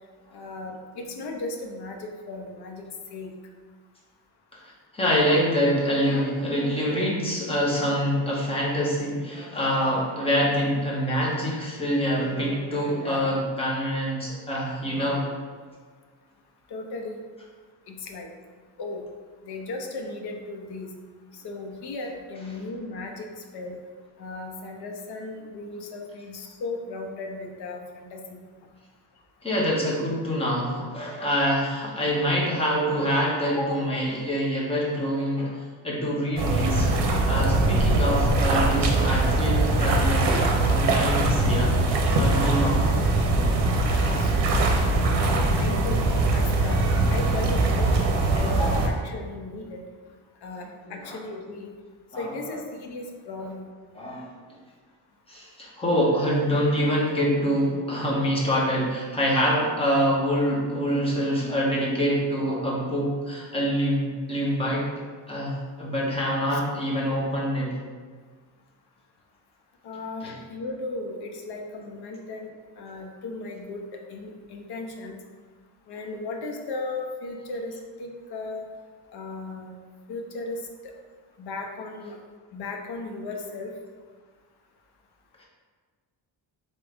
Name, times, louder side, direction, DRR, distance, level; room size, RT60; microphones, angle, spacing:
voice 1, 0.3-3.3 16.7-17.2 17.9-18.3 18.8-19.0 19.4-20.9 21.3-23.8 24.2-28.4 33.6-33.8 44.2-44.4 45.5-46.0 46.3-46.8 47.1-49.8 50.4-51.7 52.2-53.7 66.5-66.6 69.8-75.2 75.9-78.7 79.1-79.8 80.1-80.6 81.4-82.2 82.5-83.7, left 2 dB, 60° left, 2 dB, 0.7 m, -36 dB
voice 2, 4.9-15.3 29.4-36.9 37.2-40.3 40.7-41.8 42.2-42.9 50.8-51.2 52.1-52.3 54.0-54.3 55.3-64.8 65.3-67.8 70.2-70.3, equal, 15° left, -5 dB, 0.8 m, -25 dB
sound 1, 36.4-48.9, right 2 dB, 65° right, 0.7 m, -22 dB
4.0 x 3.5 x 3.4 m, 1.5 s
wide cardioid pair, 175°, 44 cm